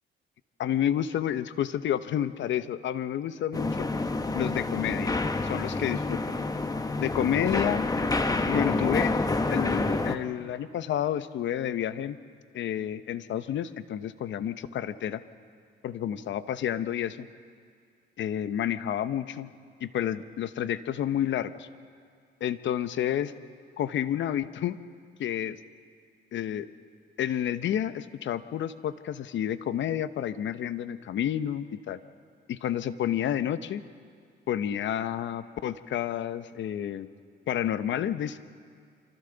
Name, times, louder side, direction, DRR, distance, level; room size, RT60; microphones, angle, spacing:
voice 1, 0.6-3.9 4.3-5.1 5.4-6.2 7.0-7.8 8.5-9.1 9.5-12.2 12.5-15.2 15.8-17.3 18.2-19.5 19.8-21.7 22.4-23.3 23.8-24.8 25.2-25.6 26.3-26.7 27.2-32.0 32.5-33.8 34.5-37.1 37.5-38.4, left 10 dB, 70° left, 13 dB, 0.8 m, -30 dB
sound 1, 3.5-10.2, left 3 dB, 20° left, 1.1 m, -28 dB
26.5 x 24.5 x 3.9 m, 2.2 s
cardioid pair, 90°, 20 cm